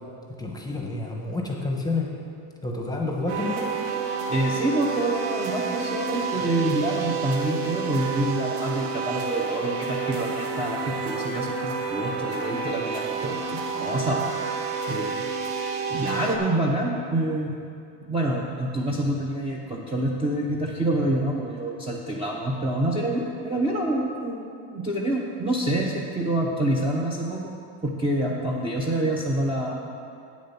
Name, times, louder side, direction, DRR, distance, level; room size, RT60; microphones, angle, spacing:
voice 1, 0.4-2.1 2.6-3.7, left 2 dB, 10° left, 0 dB, 1.0 m, -29 dB
sound 1, 3.3-16.4, right 5 dB, 85° right, 1.1 m, -29 dB
voice 2, 4.3-14.3 14.9-15.2 15.9-17.5 18.0-27.5 27.8-29.9, right 1 dB, 10° right, -3 dB, 0.7 m, -27 dB
8.7 x 7.2 x 5.8 m, 2.4 s
cardioid pair, 140°, 46 cm